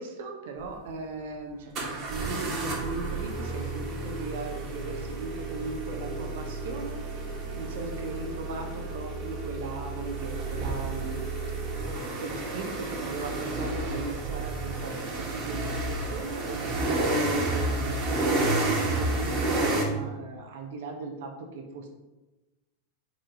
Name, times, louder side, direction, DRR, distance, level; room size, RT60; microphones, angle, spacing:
voice 1, 0.0-11.2 11.5-11.6 12.2-21.3 21.5-21.9, right 3 dB, 55° right, 2 dB, 1.0 m, -38 dB
sound 1, 0.6-0.7 1.7-19.8, right 2 dB, 35° right, 1.7 m, -31 dB
5.1 x 4.4 x 4.9 m, 1.1 s
figure-of-eight pair, 90°, 0 cm